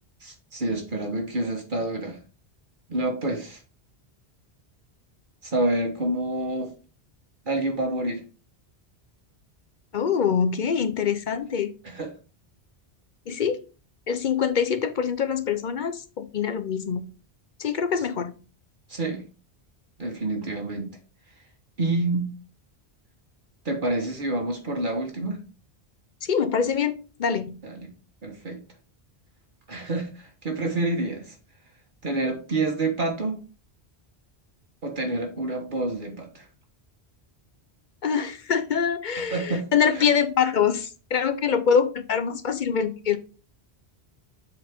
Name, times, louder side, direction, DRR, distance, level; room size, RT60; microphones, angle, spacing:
voice 1, 0.2-2.2 2.9-3.6 5.4-6.7 7.4-8.2 11.8-12.1 18.9-19.2 20.0-20.9 21.8-22.3 23.6-25.4 27.6-27.9 28.2-28.6 29.7-31.3 32.0-33.4 34.8-36.4 39.3-39.7 39.9-40.0, right 2 dB, 50° right, 3 dB, 1.4 m, -28 dB
voice 2, 9.9-11.7 13.3-13.6 14.1-17.0 17.6-18.3 26.2-27.6 38.0-43.2, left 7 dB, 55° left, 11 dB, 0.7 m, -24 dB
7.5 x 4.6 x 3.5 m, 0.35 s
omnidirectional pair, 1.1 m